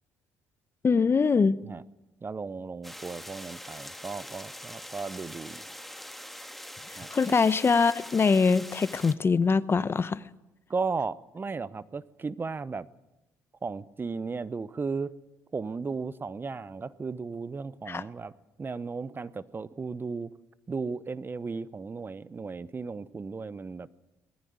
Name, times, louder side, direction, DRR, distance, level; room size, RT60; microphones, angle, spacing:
voice 1, 0.8-1.6 6.9-10.2 17.9-18.0, left 5 dB, 35° left, 0.9 m, -23 dB
voice 2, 2.2-5.6 7.0-7.1 10.7-12.9 13.6-15.1 15.5-18.3 18.6-20.3 20.7-23.9, right 4 dB, 30° right, 0.8 m, -35 dB
sound 1, 2.8-9.1, equal, ahead, 1.9 m, -43 dB
20.0 x 15.0 x 9.5 m
supercardioid pair, 60°, 7 cm